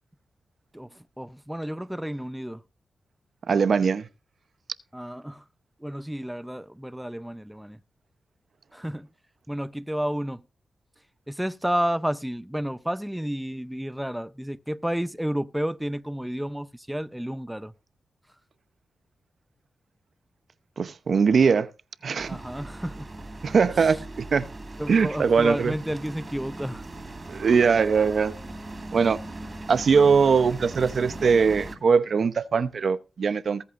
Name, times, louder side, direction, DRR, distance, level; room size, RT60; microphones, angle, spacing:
voice 1, 0.7-2.6 4.9-5.4 5.8-7.8 8.7-9.1 9.5-10.4 11.3-17.7 22.3-23.1 23.8-23.9 24.8-26.8, equal, 5° right, 0.6 m, -31 dB
voice 2, 3.5-4.1 20.8-21.7 22.0-22.4 23.4-24.5 24.9-25.7 27.3-28.4 28.9-29.2 29.7-33.6, right 5 dB, 65° right, 0.8 m, -21 dB
sound 1, 22.2-31.8, right 2 dB, 35° right, 3.0 m, -39 dB
20.0 x 8.4 x 2.6 m
cardioid pair, 70°, 0 cm